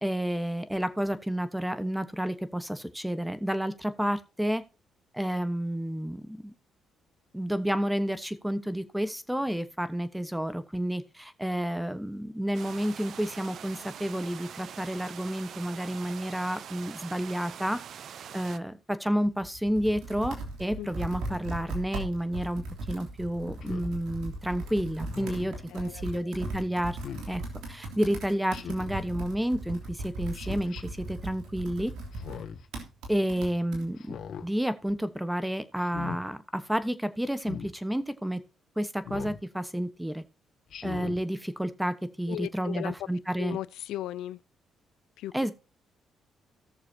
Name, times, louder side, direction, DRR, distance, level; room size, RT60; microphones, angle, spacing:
voice 1, 0.0-4.6 5.1-6.5 7.3-17.8 18.3-27.0 27.3-27.4 27.7-31.9 33.1-34.2 34.4-38.4 38.8-40.2 40.8-43.6 45.3-45.5, equal, 5° right, 1.2 m, -30 dB
sound 1, 12.5-18.6, right 9 dB, 65° right, 0.5 m, -44 dB
Computer keyboard, 19.2-33.9, right 2 dB, 85° right, 3.4 m, -38 dB
Speech synthesizer, 23.6-23.9 25.0-25.6 27.0-27.3 28.5-29.0 30.3-30.8 32.1-32.7 34.0-34.5 35.8-36.2 37.4-37.7 39.0-39.4 40.7-41.2, left 7 dB, 65° left, 1.8 m, -40 dB
voice 2, 25.7-26.3 42.3-43.1 43.4-44.4 45.2-45.3, left 13 dB, 85° left, 0.4 m, -37 dB
17.5 x 6.8 x 2.8 m
cardioid pair, 90°, 0 cm